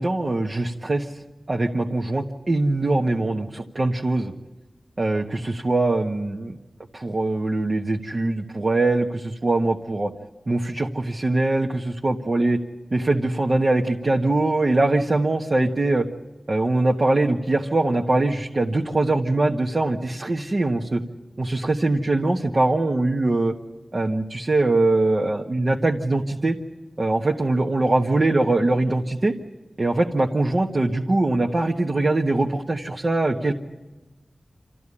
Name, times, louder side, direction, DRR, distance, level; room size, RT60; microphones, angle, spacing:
voice 1, 0.0-4.3 5.0-6.6 6.9-10.1 10.5-12.6 12.9-16.0 16.5-21.0 21.4-23.5 23.9-26.6 27.0-29.3 29.8-33.5, right 2 dB, 45° right, 1 dB, 1.4 m, -22 dB
27.0 x 14.5 x 9.9 m, 1.2 s
wide cardioid pair, 85°, 0 cm